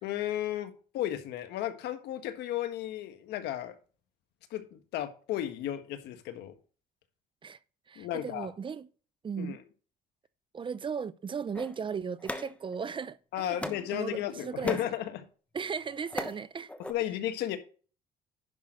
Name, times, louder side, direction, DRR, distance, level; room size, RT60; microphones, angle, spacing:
voice 1, 0.0-3.7 4.5-6.5 7.9-8.5 9.4-9.6 13.3-15.2 16.9-17.6, left 12 dB, 85° left, 1.5 m, -34 dB
voice 2, 7.9-8.9 9.2-9.6 10.5-13.6 13.9-14.8 15.5-16.7, right 6 dB, 30° right, 0.6 m, -36 dB
sound 1, 11.5-13.1 13.6-14.0 14.4-15.0 15.7-16.4 16.7-16.9, left 1 dB, 5° left, 1.1 m, -38 dB
10.5 x 6.2 x 3.8 m
cardioid pair, 110°, 17 cm